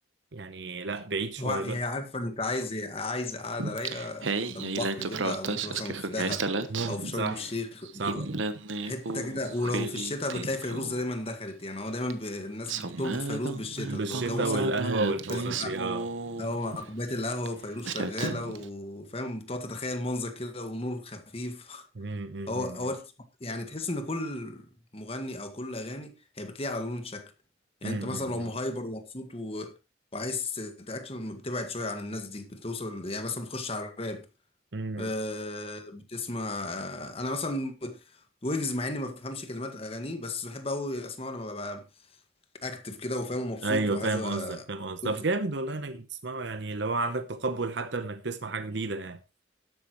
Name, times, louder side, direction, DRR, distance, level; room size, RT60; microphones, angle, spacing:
voice 1, 0.3-1.8 6.7-7.4 8.0-8.2 13.9-16.1 22.0-22.8 27.8-28.5 34.7-35.1 43.6-49.2, right 3 dB, 65° right, 0.8 m, -31 dB
voice 2, 1.4-6.4 6.9-8.2 8.8-14.7 15.3-15.7 16.4-21.9 22.5-23.0 23.4-24.7 24.9-27.3 27.8-29.7 30.1-34.2 35.0-41.8 42.6-44.6 45.0-45.1, left 2 dB, 30° left, 1.7 m, -34 dB
Singing, 3.6-7.5 7.9-11.1 12.1-12.2 12.7-16.9 17.5-17.6 17.8-18.6, right 3 dB, 85° right, 1.1 m, -33 dB
12.5 x 11.0 x 3.1 m
head